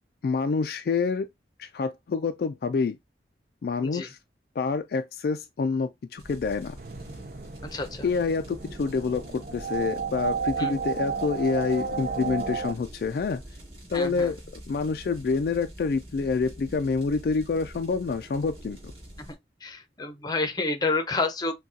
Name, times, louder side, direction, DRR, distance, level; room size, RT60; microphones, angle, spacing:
voice 1, 0.2-1.3 1.6-3.0 3.6-4.2 4.6-6.8 8.0-13.4 13.9-14.4 14.7-18.9, left 4 dB, 55° left, 0.3 m, -27 dB
sound 1, 6.2-19.3, equal, 35° right, 3.0 m, -45 dB
sound 2, 6.8-12.7, right 5 dB, 50° right, 0.5 m, -32 dB
voice 2, 7.6-8.1 10.6-10.8 13.9-14.3 19.2-19.3 19.6-21.5, left 3 dB, 20° left, 0.7 m, -29 dB
6.2 x 2.3 x 2.7 m
head